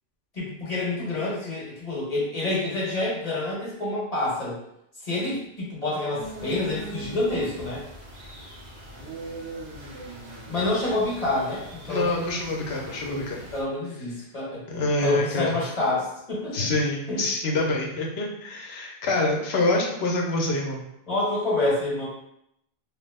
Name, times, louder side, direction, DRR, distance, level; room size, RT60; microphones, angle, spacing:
voice 1, 0.3-4.6 5.0-7.8 10.5-12.2 13.5-14.6 15.0-16.6 17.1-17.2 21.1-22.1, left 2 dB, 40° left, -7 dB, 1.2 m, -27 dB
sound 1, 6.2-13.6, right 1 dB, 85° right, 1.1 m, -40 dB
voice 2, 11.9-13.4 14.7-15.6 16.5-20.8, left 2 dB, 90° left, -1 dB, 0.9 m, -26 dB
3.0 x 2.0 x 3.4 m, 0.77 s
omnidirectional pair, 1.0 m